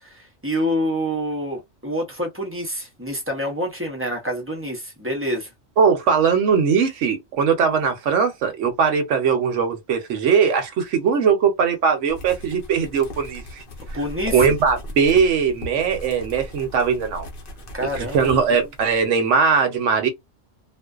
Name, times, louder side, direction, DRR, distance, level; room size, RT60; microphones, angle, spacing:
voice 1, 0.0-5.5 13.9-14.5 17.7-18.3, equal, 15° right, 0.5 m, -27 dB
voice 2, 5.8-13.6 14.3-17.3 17.9-20.1, right 6 dB, 75° right, 1.0 m, -20 dB
sound 1, 12.1-19.1, left 1 dB, 55° left, 0.8 m, -37 dB
2.5 x 2.1 x 2.3 m
omnidirectional pair, 1.3 m